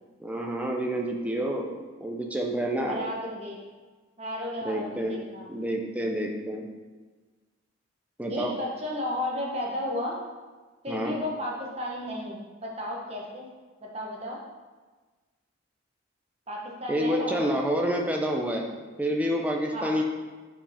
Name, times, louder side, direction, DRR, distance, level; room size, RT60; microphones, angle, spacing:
voice 1, 0.2-1.7 2.0-3.1 4.6-5.2 5.5-6.7 8.2-8.5 10.9-11.1 16.9-18.7 19.0-20.0, equal, 5° right, 0 dB, 0.7 m, -28 dB
voice 2, 2.9-3.6 4.2-5.4 8.3-10.2 10.8-13.5 13.8-14.4 16.5-17.5 19.7-19.9, left 1 dB, 30° right, -2 dB, 1.1 m, -33 dB
5.5 x 5.1 x 5.0 m, 1.3 s
head